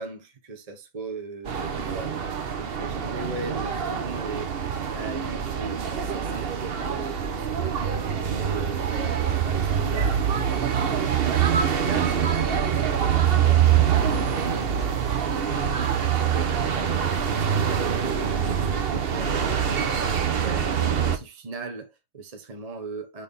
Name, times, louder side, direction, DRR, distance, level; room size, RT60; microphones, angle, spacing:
voice 1, 0.0-2.2 2.5-4.5 4.9-7.8 8.1-10.1 10.5-14.7 15.3-20.0 20.3-23.2, right 3 dB, 30° right, 1.1 m, -39 dB
sound 1, 1.4-21.2, right 8 dB, 50° right, 1.0 m, -25 dB
6.4 x 3.4 x 5.4 m
omnidirectional pair, 1.5 m